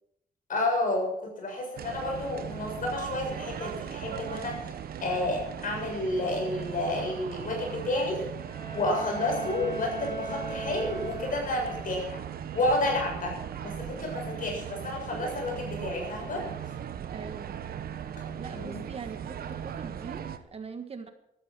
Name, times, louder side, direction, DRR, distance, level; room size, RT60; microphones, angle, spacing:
voice 1, 0.5-4.7 5.0-8.3 8.7-12.2 12.5-13.4 13.6-16.5 18.5-18.8, left 2 dB, 60° left, 1 dB, 7.1 m, -30 dB
sound 1, 1.8-20.4, right 9 dB, 70° right, 1.1 m, -38 dB
Bowed string instrument, 8.4-11.8, right 3 dB, 20° left, 4.9 m, -38 dB
voice 2, 17.1-17.6 18.4-21.1, right 5 dB, 40° right, 7 dB, 1.6 m, -42 dB
16.0 x 12.5 x 6.1 m, 0.79 s
wide cardioid pair, 150°, 16 cm